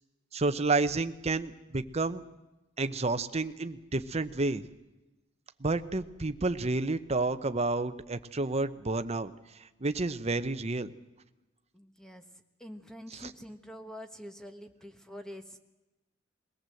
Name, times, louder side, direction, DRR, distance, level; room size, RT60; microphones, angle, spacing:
voice 1, 0.3-2.2 2.8-4.6 5.6-9.3 9.8-10.9 13.2-13.3, right 3 dB, 35° right, 10 dB, 0.9 m, -30 dB
voice 2, 11.7-12.2 12.6-15.6, equal, 5° left, 7 dB, 1.2 m, -46 dB
22.5 x 18.0 x 7.8 m, 1.0 s
head